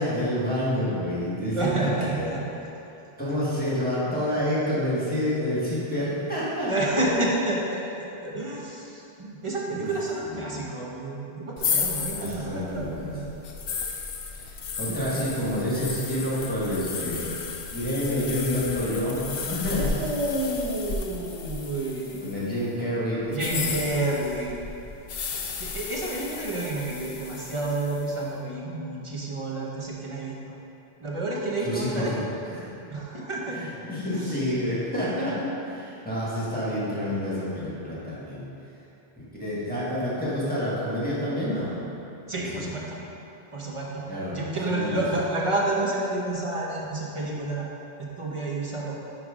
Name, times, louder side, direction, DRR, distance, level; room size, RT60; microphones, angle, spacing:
voice 1, 0.0-1.7 2.1-2.3 3.2-6.7 9.7-9.8 10.3-10.6 12.1-13.1 14.4-17.2 17.7-19.9 22.2-23.7 31.6-32.2 32.6-32.7 33.5-38.4 39.2-41.7 42.3-42.6 44.1-44.4 44.7-45.0, left 1 dB, 10° left, -9 dB, 1.5 m, -28 dB
voice 2, 1.5-2.4 6.7-13.3 14.9-15.3 19.8-22.3 23.3-24.6 25.6-30.5 31.0-32.2 32.9-33.7 34.1-34.4 42.3-43.0 43.5-47.7 48.0-49.0, right 2 dB, 30° right, -4 dB, 0.9 m, -30 dB
sound 1, 11.6-22.5 23.3-28.1, left 5 dB, 65° left, 0.8 m, -34 dB
9.1 x 3.3 x 5.0 m, 2.9 s
omnidirectional pair, 1.1 m